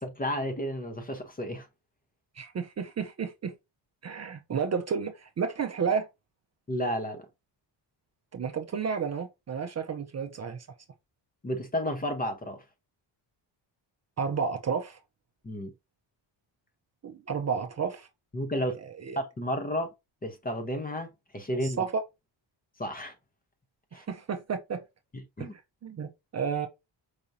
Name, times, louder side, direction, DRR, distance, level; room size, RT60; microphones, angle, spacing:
voice 1, 0.0-1.7 6.7-7.3 11.4-12.6 15.4-15.7 18.3-18.8 19.2-19.9 20.2-21.1 21.3-21.8 22.8-23.1 23.9-24.0 25.1-25.5, equal, 20° left, 0.8 m, -32 dB
voice 2, 2.4-3.5 4.0-6.1 8.3-10.7 14.2-15.0 17.0-18.1 19.0-19.2 21.6-22.0 23.9-24.8 25.4-25.5 25.8-26.7, right 6 dB, 35° right, 0.5 m, -31 dB
4.9 x 2.9 x 2.6 m
cardioid pair, 120°, 45 cm